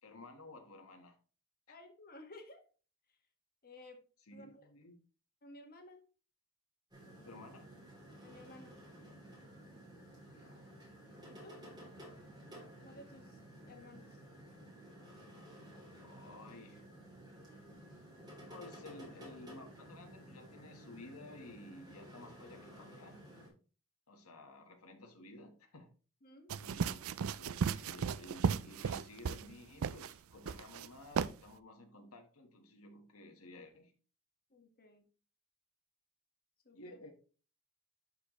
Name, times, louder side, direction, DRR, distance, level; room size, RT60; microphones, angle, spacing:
voice 1, 0.0-1.2 1.7-1.8 4.2-5.0 7.1-7.7 10.3-10.8 16.0-16.8 18.5-23.3 24.1-25.9 26.6-33.9 36.7-37.1, left 2 dB, 85° left, 4 dB, 1.5 m, -54 dB
voice 2, 1.7-2.6 3.6-4.0 4.3-4.7 5.4-6.0 8.2-8.8 11.3-11.7 12.8-14.2 26.2-26.5 34.5-35.1 36.6-37.0, left 2 dB, 45° left, 4 dB, 1.6 m, -55 dB
sound 1, 6.9-23.5, right 1 dB, 20° right, 3.1 m, -54 dB
sound 2, 26.5-29.5 29.8-30.1 30.4-30.9 31.1-31.3, right 6 dB, 70° right, 0.4 m, -35 dB
11.5 x 4.5 x 3.1 m, 0.37 s
head